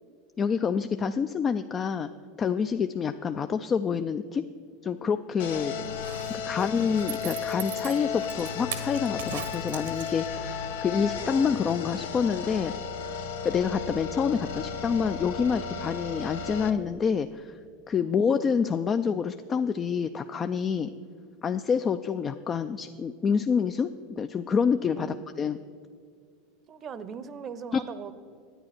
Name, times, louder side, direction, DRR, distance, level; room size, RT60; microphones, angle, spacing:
voice 1, 0.4-2.1 2.4-4.5 4.8-5.7 6.3-12.7 13.4-17.6 17.9-20.9 21.4-25.1 25.4-25.6 27.7-27.8, left 6 dB, 30° left, 9 dB, 0.4 m, -27 dB
sound 1, 5.4-16.7, left 6 dB, 80° left, 0.7 m, -34 dB
voice 2, 5.8-6.9 10.3-10.6 18.0-18.2 25.0-25.3 26.7-28.1, right 6 dB, 35° right, 14 dB, 0.7 m, -42 dB
Zipper (clothing), 5.9-10.5 10.8-10.9, right 9 dB, 80° right, 1.0 m, -40 dB
10.5 x 8.9 x 5.9 m, 2.2 s
hypercardioid pair, 90°, 0 cm